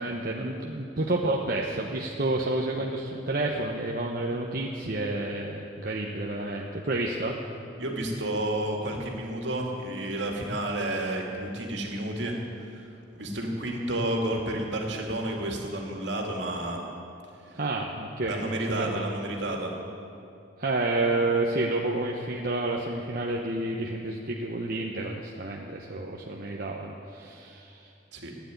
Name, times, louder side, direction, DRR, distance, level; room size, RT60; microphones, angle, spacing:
voice 1, 0.0-7.4 17.5-19.0 20.6-27.8, right 2 dB, 50° right, -1 dB, 1.1 m, -30 dB
voice 2, 7.8-12.4 12.6-12.8 13.1-16.8 18.3-19.7 28.1-28.3, right 1 dB, 70° right, 1 dB, 2.6 m, -31 dB
15.5 x 9.6 x 9.5 m, 2.6 s
head